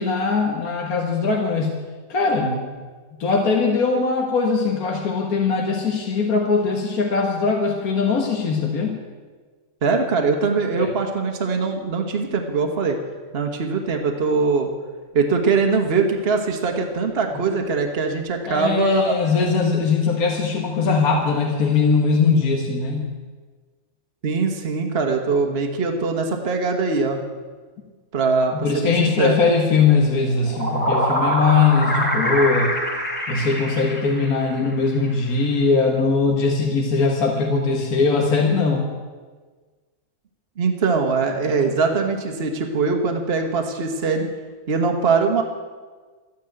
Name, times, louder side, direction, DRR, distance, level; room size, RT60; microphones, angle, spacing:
voice 1, 0.0-1.7 2.1-2.5 3.2-8.9 10.8-10.9 18.5-23.1 28.6-32.7 33.3-38.9, left 4 dB, 75° left, 1 dB, 1.9 m, -20 dB
voice 2, 9.8-13.0 13.3-14.7 15.1-19.2 24.2-27.2 28.1-29.3 40.6-44.3 44.7-45.4, right 4 dB, 45° right, 3 dB, 1.5 m, -22 dB
sound 1, 30.3-34.7, equal, 40° left, 3.2 m, -24 dB
13.0 x 9.8 x 9.0 m, 1.4 s
omnidirectional pair, 1.6 m